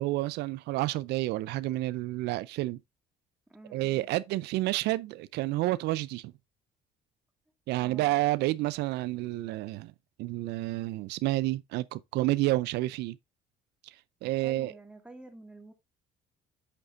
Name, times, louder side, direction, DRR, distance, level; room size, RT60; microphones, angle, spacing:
voice 1, 0.0-2.8 3.7-6.3 7.7-9.9 10.2-13.2 13.8-14.7, right 17 dB, 80° right, 0.4 m, -30 dB
voice 2, 3.5-4.0 7.8-8.1 14.2-15.7, right 2 dB, 5° right, 1.8 m, -50 dB
8.8 x 6.7 x 2.5 m
cardioid pair, 110°, 17 cm